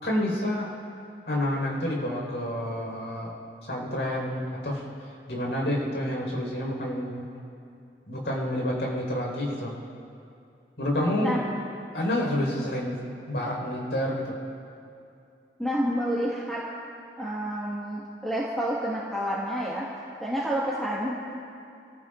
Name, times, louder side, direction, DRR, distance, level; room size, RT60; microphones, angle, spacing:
voice 1, 0.0-0.7 1.3-3.3 3.7-4.8 5.3-7.3 8.1-9.7 10.8-11.4 11.9-13.0 13.3-14.3, left 1 dB, 75° left, -2 dB, 4.7 m, -28 dB
voice 2, 15.6-16.6 17.2-19.9 20.2-21.4, equal, ahead, -7 dB, 1.7 m, -29 dB
30.0 x 15.5 x 2.6 m, 2.6 s
head